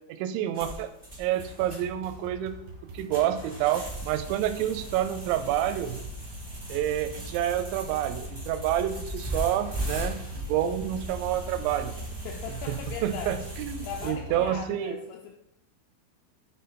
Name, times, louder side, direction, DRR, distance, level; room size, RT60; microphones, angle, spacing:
voice 1, 0.2-0.9 1.2-2.6 2.9-6.0 6.7-11.9 13.0-15.0, right 11 dB, 85° right, 10 dB, 2.9 m, -28 dB
sound 1, 0.5-14.1, right 1 dB, 35° right, 0.3 m, -39 dB
sound 2, 1.2-14.6, equal, 70° right, 2.5 m, -43 dB
voice 2, 12.2-13.5 13.8-15.4, left 7 dB, 85° left, 1 dB, 2.4 m, -39 dB
9.5 x 3.7 x 4.2 m, 0.83 s
omnidirectional pair, 5.4 m